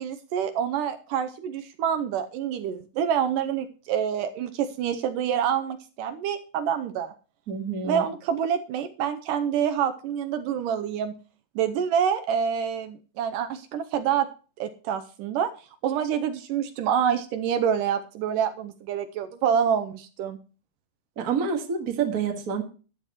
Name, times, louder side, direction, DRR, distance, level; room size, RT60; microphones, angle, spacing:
voice 1, 0.0-7.1 7.8-11.1 11.6-14.3 14.6-15.5 15.8-20.4, right 8 dB, 80° right, 9 dB, 2.2 m, -27 dB
voice 2, 7.5-8.1 21.2-22.6, right 6 dB, 35° right, 3 dB, 1.5 m, -28 dB
13.0 x 10.5 x 3.0 m, 0.36 s
omnidirectional pair, 4.0 m